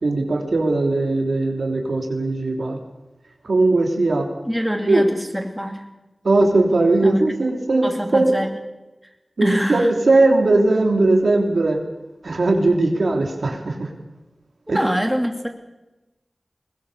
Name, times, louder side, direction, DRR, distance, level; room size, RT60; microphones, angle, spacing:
voice 1, 0.0-2.8 3.4-4.3 4.9-5.0 6.2-8.3 9.4-11.8 12.2-13.9 14.7-14.9, right 2 dB, 80° right, 2 dB, 3.3 m, -19 dB
voice 2, 4.5-5.8 7.0-7.3 7.8-8.5 9.4-9.9 14.7-15.5, equal, 5° right, 4 dB, 2.8 m, -24 dB
20.5 x 20.5 x 7.0 m, 1.0 s
wide cardioid pair, 55°, 0 cm